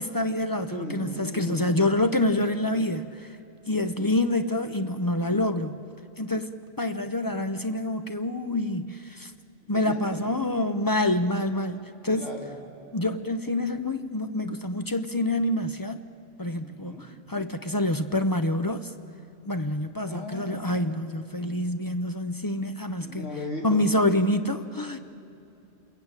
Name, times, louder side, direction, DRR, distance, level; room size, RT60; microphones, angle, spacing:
voice 1, 0.0-3.3 3.7-5.8 6.2-9.3 9.7-12.2 12.9-16.0 16.4-18.9 19.4-23.3 23.6-25.0, left 1 dB, 25° left, 9 dB, 0.5 m, -27 dB
voice 2, 0.5-1.9 9.7-10.2 12.2-12.5 16.6-17.1 20.1-20.7 23.0-23.9, left 1 dB, 70° left, -2 dB, 4.1 m, -37 dB
28.0 x 22.0 x 8.9 m, 2.7 s
omnidirectional pair, 1.3 m